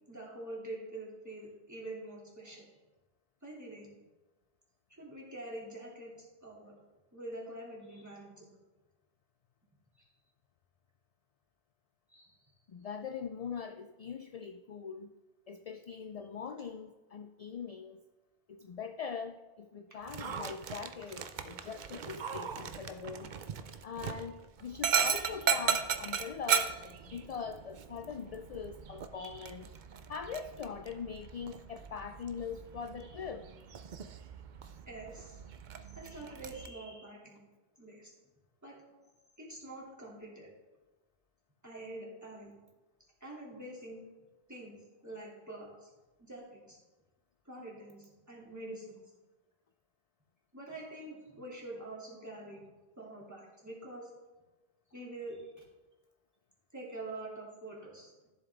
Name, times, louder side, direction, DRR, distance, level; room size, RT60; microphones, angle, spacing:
voice 1, 0.1-2.6 3.4-3.9 4.9-6.7 7.1-8.5 10.0-10.1 12.1-12.4 19.9-20.0 29.1-29.5 33.0-33.2 34.9-35.4 35.9-37.4 37.8-38.1 38.6-38.8 39.4-40.5 41.6-42.5 43.2-44.0 44.5-44.8 45.0-45.9 46.2-46.8 47.4-49.0 50.5-52.7 53.0-54.1 54.9-55.5 56.7-58.1, right 2 dB, 15° right, -5 dB, 2.6 m, -46 dB
voice 2, 12.7-15.1 15.5-18.0 18.5-23.3 23.8-29.7 30.1-33.5, left 6 dB, 55° left, 8 dB, 0.4 m, -42 dB
Dog, 20.0-36.7, right 7 dB, 55° right, 0.7 m, -37 dB
13.5 x 7.6 x 3.5 m, 1.2 s
omnidirectional pair, 1.0 m